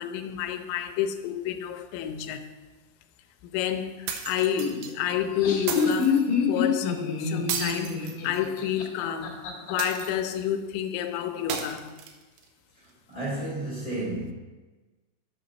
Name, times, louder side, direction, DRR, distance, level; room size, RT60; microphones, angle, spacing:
voice 1, 0.0-2.4 3.4-9.4 9.7-11.9, left 9 dB, 85° left, 2.9 m, -29 dB
sound 1, 4.1-4.9 5.7-6.3 7.5-8.7 9.8-10.4 11.5-12.4, right 7 dB, 85° right, 3.0 m, -34 dB
Laughter, 5.1-9.7, left 6 dB, 60° left, 2.8 m, -27 dB
voice 2, 13.1-14.3, right 2 dB, 25° left, 2.2 m, -31 dB
8.0 x 5.8 x 5.2 m
omnidirectional pair, 5.1 m